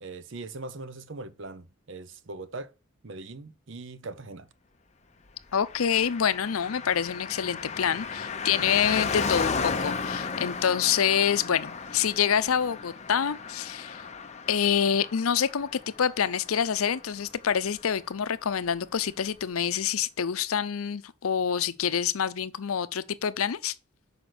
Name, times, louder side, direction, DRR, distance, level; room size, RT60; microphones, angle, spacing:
voice 1, 0.0-2.7 3.0-4.5, right 3 dB, 60° right, 0.7 m, -40 dB
voice 2, 5.5-14.1 14.5-23.7, left 8 dB, 85° left, 0.6 m, -27 dB
Car passing by, 5.7-17.5 17.8-17.9, left 5 dB, 30° left, 0.7 m, -34 dB
6.5 x 5.0 x 6.1 m
head